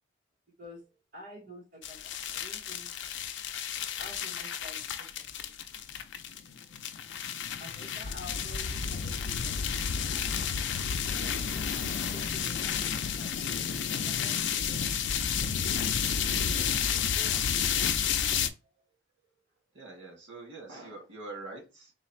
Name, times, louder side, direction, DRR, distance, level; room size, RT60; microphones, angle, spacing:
voice 1, 1.1-2.9 4.0-5.8 7.6-10.5 11.1-11.7 12.1-13.5 14.0-14.9 16.4-17.5, equal, 50° right, -4 dB, 1.5 m, -50 dB
sound 1, 1.8-18.5, left 7 dB, 70° left, 0.4 m, -31 dB
voice 2, 6.4-6.7 19.7-21.9, right 3 dB, 85° right, -1 dB, 2.1 m, -45 dB
3.9 x 2.5 x 4.2 m, 0.30 s
head